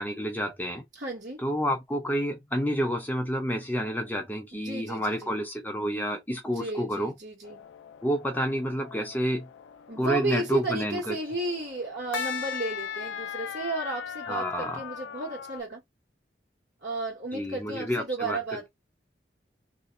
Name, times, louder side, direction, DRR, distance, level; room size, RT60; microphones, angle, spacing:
voice 1, 0.0-0.8 1.4-7.1 8.0-9.5 10.0-11.2 14.3-14.8 17.3-18.4, equal, 10° left, 0.6 m, -29 dB
voice 2, 1.0-1.4 4.5-5.3 6.5-7.6 9.9-15.8 16.8-18.7, right 3 dB, 55° right, 1.9 m, -33 dB
sound 1, 7.4-15.6, left 7 dB, 90° left, 0.3 m, -39 dB
2.9 x 2.7 x 2.5 m
head